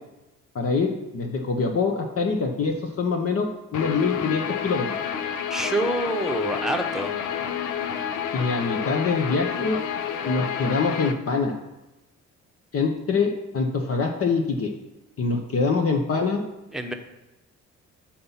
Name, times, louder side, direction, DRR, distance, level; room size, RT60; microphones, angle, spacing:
voice 1, 0.5-5.0 8.3-9.8 10.3-11.5 12.7-14.7 15.2-16.4, left 4 dB, 50° left, 3 dB, 1.0 m, -24 dB
Guitar, 3.7-11.1, left 8 dB, 85° left, 0.7 m, -29 dB
voice 2, 5.5-7.2 16.7-16.9, right 1 dB, ahead, 3 dB, 1.0 m, -27 dB
8.6 x 4.3 x 5.7 m, 0.99 s
cardioid pair, 90°, 30 cm